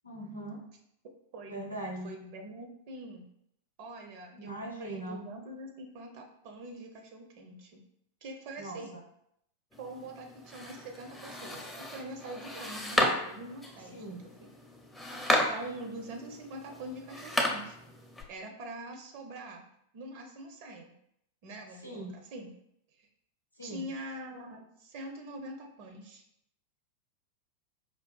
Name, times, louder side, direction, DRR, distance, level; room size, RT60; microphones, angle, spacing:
voice 1, 0.0-0.6 1.5-2.1 4.3-5.2 8.6-8.8 13.9-14.2 21.8-22.1 23.6-23.9, right 1 dB, 90° left, -1 dB, 0.6 m, -40 dB
voice 2, 2.0-3.3 3.8-7.8 8.2-9.0 9.8-14.0 15.5-17.8 18.3-19.6 19.9-20.9 21.4-22.5 22.9-23.1 23.6-26.2, right 1 dB, 45° right, 3 dB, 0.4 m, -44 dB
sound 1, 9.7-18.2, left 1 dB, 10° left, 0.5 m, -34 dB
4.5 x 2.2 x 2.2 m, 0.74 s
figure-of-eight pair, 90°, 0 cm